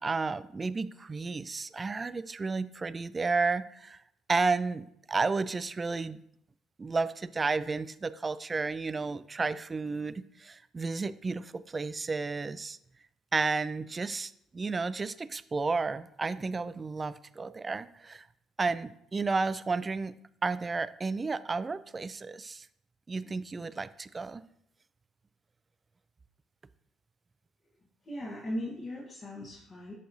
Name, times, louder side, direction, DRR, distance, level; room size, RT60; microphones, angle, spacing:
voice 1, 0.0-4.0 4.3-6.2 6.8-12.8 13.3-18.3 18.6-20.1 20.4-22.7 23.1-24.4, right 4 dB, 30° right, 15 dB, 0.3 m, -32 dB
voice 2, 28.0-29.9, left 1 dB, 40° left, -4 dB, 1.3 m, -38 dB
6.5 x 5.4 x 2.7 m, 0.74 s
hypercardioid pair, 55°, 0 cm